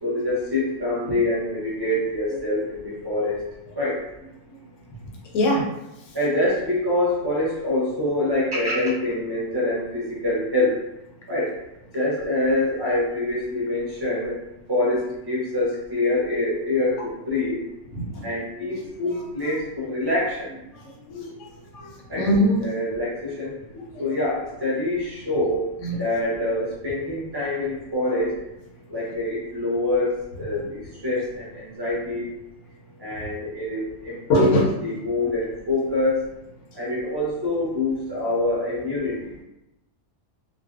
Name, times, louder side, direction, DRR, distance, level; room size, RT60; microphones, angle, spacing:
voice 1, 0.0-3.4 3.7-4.0 6.1-10.7 11.3-11.5 11.9-14.4 14.7-17.6 18.2-20.5 22.1-22.3 22.6-23.5 24.0-25.6 26.0-28.3 28.9-32.3 33.0-36.2 36.7-39.3, left 1 dB, 25° right, -7 dB, 0.6 m, -25 dB
voice 2, 5.3-5.6 17.9-18.0 21.1-21.3 21.7-22.6 24.0-24.1 25.8-26.0 34.3-34.6, left 1 dB, 70° left, -1 dB, 0.9 m, -21 dB
2.5 x 2.1 x 2.4 m, 0.89 s
omnidirectional pair, 1.5 m